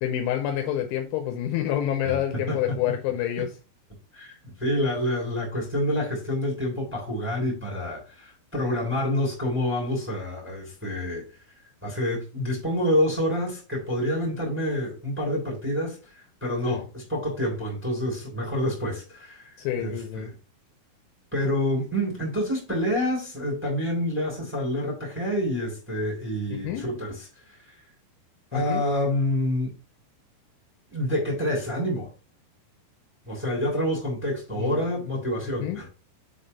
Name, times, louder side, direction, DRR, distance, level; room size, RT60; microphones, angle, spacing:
voice 1, 0.0-3.5 16.7-16.9 19.6-20.3 26.5-26.9 28.5-28.8 34.6-34.8 35.4-35.8, left 11 dB, 80° left, 2.9 m, -28 dB
voice 2, 4.1-11.2 11.8-20.3 21.3-27.2 27.5-27.6 28.5-29.7 30.9-32.1 33.2-35.9, left 1 dB, 5° right, 1.4 m, -27 dB
7.3 x 3.5 x 5.4 m
omnidirectional pair, 5.9 m